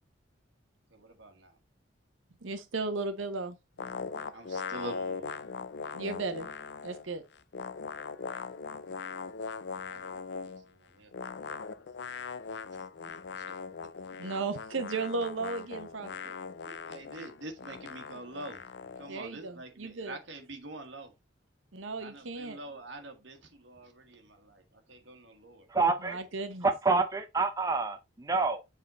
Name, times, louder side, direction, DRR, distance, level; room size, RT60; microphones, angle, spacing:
voice 1, 0.9-1.6 4.3-5.4 9.9-11.4 12.1-12.3 12.7-13.4 13.8-13.9 16.6-21.1 22.0-25.7, right 2 dB, 70° right, 1.6 m, -46 dB
voice 2, 2.4-3.6 5.9-6.5 6.8-7.2 14.2-16.3 19.1-20.2 21.7-22.6 26.0-26.7, right 3 dB, 85° right, 0.8 m, -35 dB
sound 1, 3.8-7.1 7.3-10.6 11.1-19.1, left 5 dB, 60° left, 0.4 m, -40 dB
voice 3, 25.7-26.2 26.6-28.6, right 4 dB, 20° right, 0.6 m, -27 dB
7.4 x 3.7 x 4.1 m
head